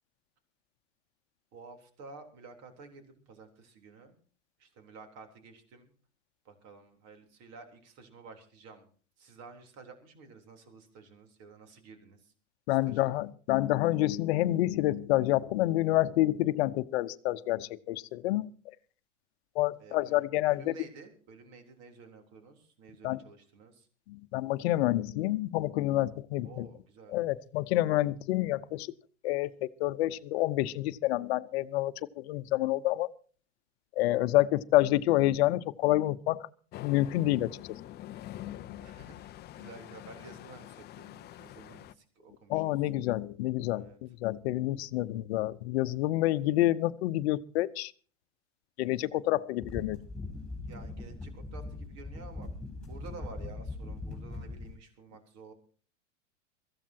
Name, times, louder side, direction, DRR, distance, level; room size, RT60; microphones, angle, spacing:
voice 1, 1.5-4.1 4.6-5.9 6.5-8.9 9.2-12.3 12.7-13.2 19.8-23.9 26.4-27.2 38.4-42.6 43.7-44.0 50.7-52.6 52.9-55.5, right 4 dB, 45° right, 6 dB, 3.6 m, -51 dB
voice 2, 12.7-18.5 19.5-20.7 23.0-23.2 24.1-26.7 27.1-28.9 29.2-33.1 34.0-36.5 36.8-37.6 42.5-47.9 48.8-50.0, left 16 dB, 55° left, 14 dB, 0.9 m, -28 dB
sound 1, 36.7-41.9, left 14 dB, 25° left, 0.6 m, -45 dB
sound 2, 49.6-54.8, left 2 dB, ahead, 5.4 m, -41 dB
23.5 x 15.0 x 2.9 m, 0.41 s
hypercardioid pair, 105°, 37 cm